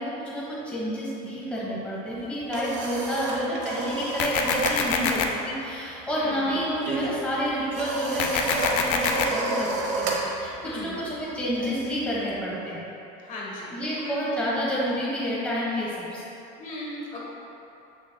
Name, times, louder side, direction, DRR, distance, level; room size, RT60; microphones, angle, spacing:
voice 1, 0.0-9.7 10.0-12.9 13.7-16.2, equal, 5° left, -7 dB, 1.1 m, -29 dB
sound 1, 2.1-4.8 5.1-5.4 5.7-12.3, right 3 dB, 65° right, 1.0 m, -32 dB
sound 2, 4.2-5.2 8.2-9.2, left 6 dB, 65° left, 0.6 m, -25 dB
voice 2, 6.1-6.5 10.6-11.0 13.2-14.2 16.6-17.2, left 1 dB, 40° left, -4 dB, 1.2 m, -37 dB
7.2 x 6.2 x 2.2 m, 2.9 s
cardioid pair, 145°, 20 cm